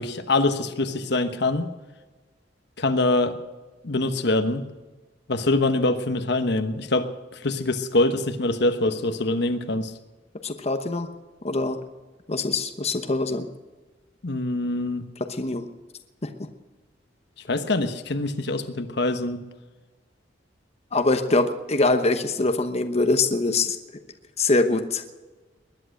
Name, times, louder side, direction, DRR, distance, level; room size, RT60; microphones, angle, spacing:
voice 1, 0.0-1.7 2.8-3.4 3.8-4.6 5.3-7.1 7.4-9.9 14.2-15.0 17.5-19.4, left 2 dB, 65° left, 9 dB, 1.2 m, -24 dB
voice 2, 10.4-11.1 11.4-11.8 12.3-13.5 15.3-15.7 16.2-16.3 20.9-23.8 24.4-25.0, left 2 dB, 35° left, 7 dB, 1.0 m, -23 dB
20.5 x 11.0 x 6.4 m, 1.3 s
head